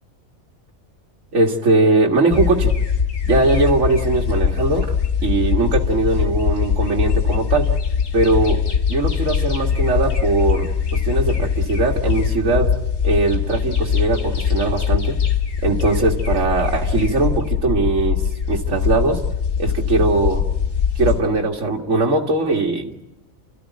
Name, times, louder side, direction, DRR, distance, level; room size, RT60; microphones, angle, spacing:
voice 1, 1.3-2.7 3.3-4.9 5.2-7.7 8.1-12.8 13.0-15.2 15.6-18.2 18.5-19.2 19.6-20.5 21.0-22.9, right 3 dB, 65° right, 1 dB, 2.2 m, -20 dB
sound 1, 2.3-21.2, left 7 dB, 70° left, 2.1 m, -21 dB
29.0 x 14.0 x 9.3 m, 0.99 s
omnidirectional pair, 1.4 m